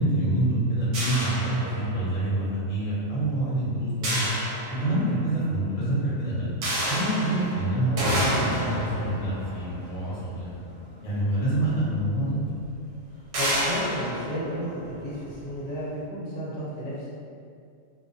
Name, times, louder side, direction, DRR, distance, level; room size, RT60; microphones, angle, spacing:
voice 1, 0.0-4.2 4.7-6.5 6.9-10.6 11.0-12.4, right 1 dB, 40° left, -9 dB, 0.8 m, -26 dB
sound 1, 0.9-2.3 4.0-5.3 6.6-11.1 12.0-12.1 12.5-12.6 13.3-15.3, right 1 dB, 70° right, 0.9 m, -30 dB
voice 2, 13.1-17.1, equal, 75° left, -8 dB, 1.1 m, -33 dB
2.5 x 2.1 x 2.6 m, 2.3 s
omnidirectional pair, 1.4 m